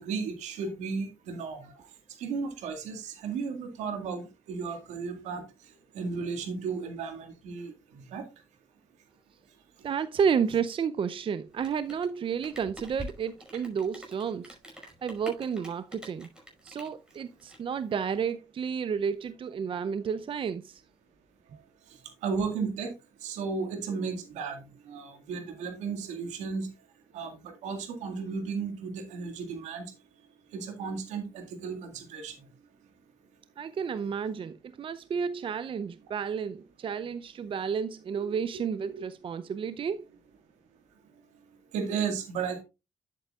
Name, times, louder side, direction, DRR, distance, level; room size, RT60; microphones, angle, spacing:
voice 1, 0.0-1.9 2.2-8.3 21.5-21.6 21.9-22.9 23.2-26.7 27.1-29.9 30.5-32.5 38.1-38.4 38.8-38.9 41.7-42.6, right 5 dB, 85° right, 2.0 m, -35 dB
voice 2, 9.8-16.3 16.6-20.8 33.6-40.0, right 7 dB, 50° right, 0.5 m, -31 dB
Rain, 11.5-18.3, equal, 5° right, 5.3 m, -46 dB
10.5 x 8.4 x 2.4 m
supercardioid pair, 60°, 12 cm